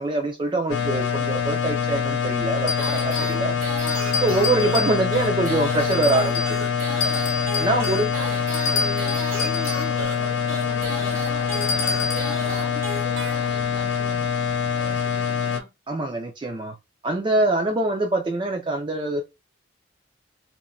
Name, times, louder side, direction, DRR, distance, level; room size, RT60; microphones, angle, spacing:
voice 1, 0.0-3.5 4.2-6.7 7.6-8.1 15.9-16.7 17.0-19.2, right 2 dB, 25° right, 0.3 m, -24 dB
sound 1, 0.7-15.6, left 6 dB, 60° left, 0.3 m, -25 dB
sound 2, 2.7-3.4 3.9-5.3 5.9-6.6 7.0-9.9 11.5-12.4, left 3 dB, 85° left, 0.8 m, -29 dB
sound 3, 2.8-13.9, right 2 dB, 80° right, 0.7 m, -35 dB
voice 2, 7.5-14.3 14.7-15.7, left 1 dB, 20° left, 0.7 m, -41 dB
2.9 x 2.1 x 2.4 m
head